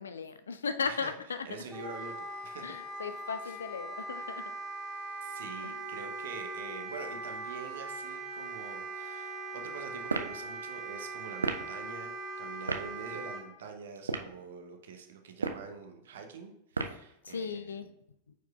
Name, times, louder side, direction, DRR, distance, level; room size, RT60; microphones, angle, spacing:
voice 1, 0.0-1.5 2.6-4.4 5.6-5.8 17.2-17.9, left 5 dB, 70° left, 11 dB, 0.3 m, -36 dB
voice 2, 1.4-2.7 3.4-3.6 5.2-17.9, right 5 dB, 60° right, 4 dB, 0.8 m, -46 dB
Wind instrument woodwind instrument, 1.7-13.4, right 3 dB, 5° left, 1.7 m, -40 dB
sound 1, 10.1-10.4 11.4-11.7 12.7-12.9 14.0-14.4 15.3-15.7 16.7-17.1, right 3 dB, 80° right, 0.4 m, -32 dB
9.1 x 4.7 x 2.3 m, 0.79 s
figure-of-eight pair, 90°, 0 cm